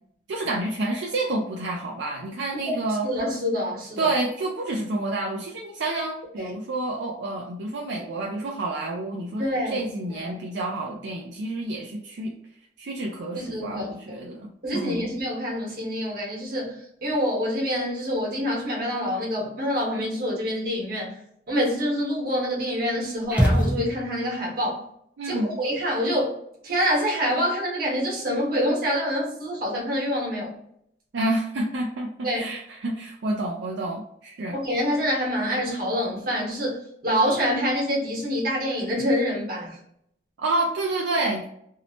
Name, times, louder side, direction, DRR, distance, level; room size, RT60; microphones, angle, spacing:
voice 1, 0.3-3.1 4.0-9.5 9.7-12.3 12.8-15.1 25.2-25.6 31.1-34.6 40.4-41.4, right 2 dB, 80° right, 0 dB, 0.4 m, -29 dB
voice 2, 3.0-4.1 6.4-6.6 9.4-9.8 10.1-10.4 13.3-13.9 14.6-21.2 21.5-24.9 25.2-26.3 26.6-30.5 32.2-32.4 34.5-39.8, equal, 55° right, -3 dB, 1.1 m, -26 dB
sound 1, 23.3-24.3, equal, 10° right, 0.6 m, -22 dB
2.7 x 2.1 x 2.8 m, 0.71 s
head